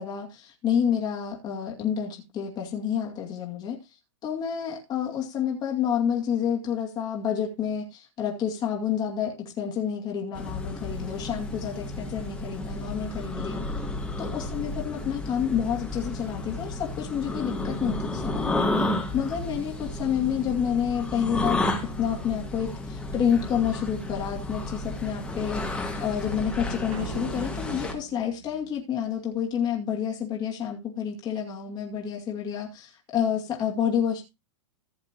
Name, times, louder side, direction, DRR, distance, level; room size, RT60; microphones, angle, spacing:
voice 1, 0.0-3.8 4.2-13.6 14.2-21.6 22.0-34.2, left 8 dB, 25° left, 2.3 m, -29 dB
sound 1, 10.3-27.9, left 2 dB, 5° left, 1.8 m, -32 dB
sound 2, 26.9-29.4, right 10 dB, 75° right, 1.0 m, -42 dB
15.0 x 7.2 x 3.0 m
hypercardioid pair, 135°, 16 cm